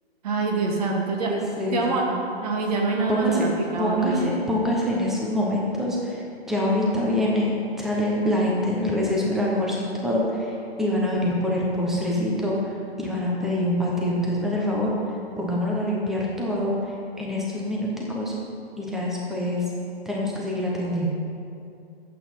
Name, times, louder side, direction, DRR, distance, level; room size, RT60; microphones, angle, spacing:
voice 1, 0.2-2.1 2.4-4.3, right 3 dB, 35° right, 0 dB, 2.3 m, -26 dB
voice 2, 1.3-2.0 3.1-3.4 3.8-6.2 6.5-9.8 10.0-10.5 10.8-12.5 13.0-14.9 15.4-16.7 17.2-18.3 18.8-19.6 20.0-21.1, left 1 dB, ahead, -4 dB, 0.7 m, -25 dB
20.5 x 8.3 x 4.4 m, 2.5 s
hypercardioid pair, 165°, 33 cm